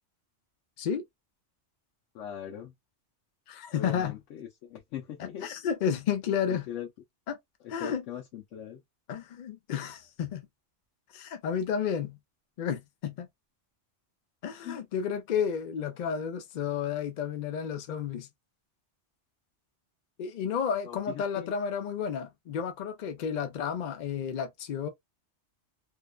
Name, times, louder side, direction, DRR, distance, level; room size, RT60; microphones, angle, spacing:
voice 1, 2.1-2.7 3.7-5.5 6.5-6.9 7.6-8.8 14.6-14.8 20.8-21.5, left 9 dB, 90° left, 0.9 m, -40 dB
voice 2, 3.5-4.2 5.2-6.7 7.3-7.4 7.7-8.0 9.1-10.5 11.1-12.2 12.6-13.3 14.4-18.3 20.2-24.9, left 7 dB, 60° left, 0.4 m, -32 dB
2.7 x 2.1 x 2.2 m
omnidirectional pair, 1.2 m